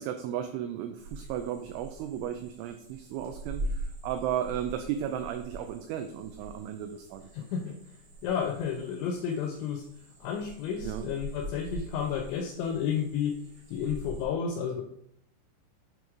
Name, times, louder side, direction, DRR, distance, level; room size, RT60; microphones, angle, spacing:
voice 1, 0.0-7.2 10.8-11.1, right 10 dB, 90° right, 7 dB, 2.6 m, -34 dB
sound 1, 1.0-14.2, right 1 dB, 60° right, 2.0 m, -43 dB
voice 2, 7.3-7.8 8.2-9.9 10.2-13.4 13.7-14.8, left 7 dB, 85° left, 4 dB, 2.6 m, -31 dB
9.1 x 3.1 x 4.7 m, 0.71 s
omnidirectional pair, 5.9 m